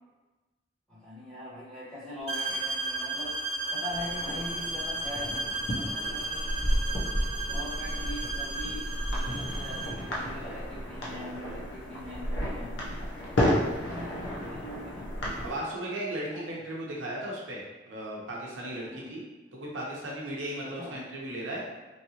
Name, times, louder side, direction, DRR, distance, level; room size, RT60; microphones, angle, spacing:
voice 1, 0.9-5.4 5.7-6.8 7.4-13.0 13.4-15.1 16.3-16.6 18.9-19.1 20.6-21.0, left 1 dB, 5° left, -12 dB, 1.4 m, -42 dB
sound 1, 2.3-10.0, right 2 dB, 30° right, 0.6 m, -34 dB
sound 2, 3.9-15.6, equal, 65° left, 0.8 m, -32 dB
voice 2, 15.4-19.2 19.5-21.6, right 1 dB, 85° right, -3 dB, 0.7 m, -36 dB
3.1 x 2.8 x 2.8 m, 1.2 s
head